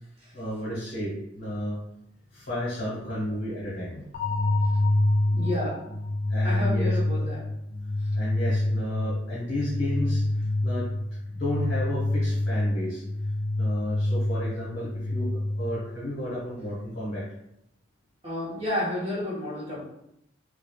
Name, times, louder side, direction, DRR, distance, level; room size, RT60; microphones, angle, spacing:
voice 1, 0.3-1.8 2.3-4.1 6.3-7.0 8.1-10.3 10.6-10.9 11.3-13.0 13.6-17.3, left 1 dB, 65° left, -7 dB, 0.8 m, -32 dB
sound 1, 4.1-16.1, left 1 dB, 45° left, 0.3 m, -27 dB
voice 2, 5.3-5.8 6.4-7.4 8.0-8.1 18.2-19.8, left 1 dB, 30° right, -7 dB, 1.0 m, -31 dB
2.9 x 2.3 x 2.3 m, 0.79 s
head